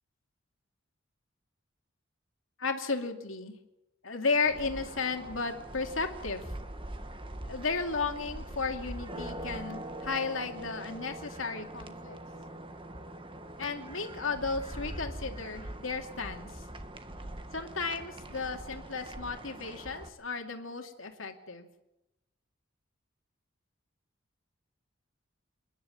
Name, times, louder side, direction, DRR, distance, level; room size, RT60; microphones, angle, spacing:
voice 1, 2.6-3.6 4.0-6.4 7.4-12.2 13.6-16.6 17.5-21.7, left 4 dB, 80° left, 4 dB, 2.6 m, -34 dB
sound 1, 4.4-20.1, right 1 dB, 25° right, 1.6 m, -43 dB
28.0 x 11.0 x 9.3 m, 0.94 s
head